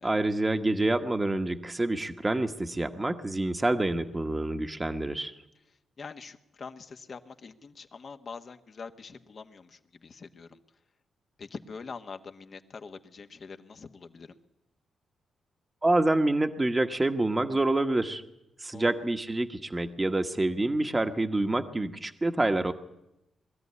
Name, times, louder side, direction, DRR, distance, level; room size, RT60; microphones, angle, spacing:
voice 1, 0.0-5.3 15.8-18.2 18.6-22.7, right 2 dB, 20° right, 6 dB, 1.2 m, -27 dB
voice 2, 6.0-10.6 11.4-14.4 18.7-18.9, left 5 dB, 55° left, 7 dB, 1.4 m, -44 dB
21.0 x 13.5 x 9.6 m, 0.88 s
cardioid pair, 60°, 0 cm